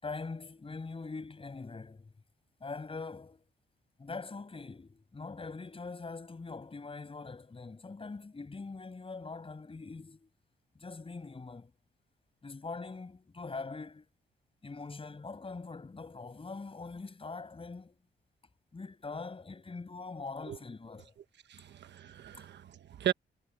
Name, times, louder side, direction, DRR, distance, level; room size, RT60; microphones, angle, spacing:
voice 1, 0.0-2.1 2.6-3.4 4.0-10.3 10.7-11.7 12.4-14.1 14.6-18.0 18.7-21.2 22.3-22.5, left 4 dB, 30° left, 6.2 m, -43 dB
voice 2, 21.5-23.1, right 12 dB, 70° right, 1.3 m, -36 dB
cardioid pair, 95°, 19 cm